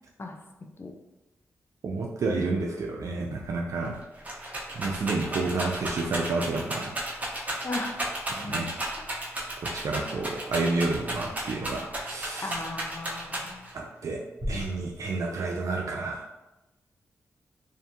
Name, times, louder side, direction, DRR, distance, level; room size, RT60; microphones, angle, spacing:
voice 1, 1.8-4.0 4.8-7.0 8.4-8.8 9.7-12.6 13.7-14.2 14.5-16.2, right 3 dB, 65° right, 0 dB, 0.3 m, -30 dB
Rattle, 3.8-13.8 14.4-15.0, right 1 dB, 25° right, 0.9 m, -33 dB
voice 2, 7.6-8.6 10.1-10.3 12.4-13.7, left 2 dB, 40° left, 4 dB, 0.4 m, -37 dB
2.5 x 2.2 x 2.7 m, 0.98 s
supercardioid pair, 45°, 6 cm